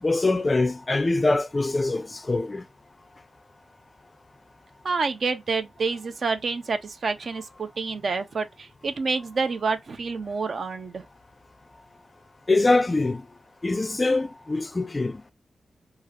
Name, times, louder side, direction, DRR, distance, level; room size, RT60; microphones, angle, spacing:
voice 1, 0.0-2.6 12.5-13.2 13.6-15.3, left 2 dB, 30° left, 0.3 m, -23 dB
voice 2, 4.8-11.1, right 4 dB, 60° right, 0.6 m, -28 dB
2.8 x 2.4 x 3.2 m
cardioid pair, 70°, 0 cm